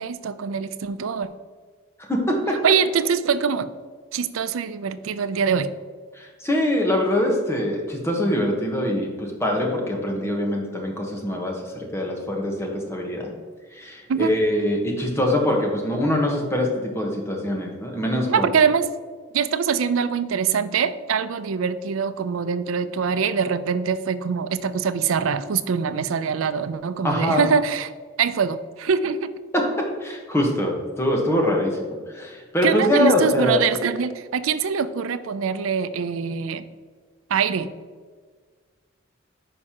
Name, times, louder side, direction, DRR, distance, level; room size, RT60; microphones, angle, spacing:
voice 1, 0.0-1.3 2.6-3.7 4.1-5.7 14.1-14.3 18.3-18.9 19.3-27.9 28.2-29.3 32.6-36.6 37.3-37.7, right 6 dB, 90° right, 13 dB, 0.4 m, -23 dB
voice 2, 2.1-2.6 6.1-13.3 13.7-18.5 27.0-27.5 29.5-31.8 32.1-33.6, left 1 dB, 15° left, 0 dB, 1.1 m, -23 dB
9.4 x 5.4 x 2.9 m, 1.6 s
head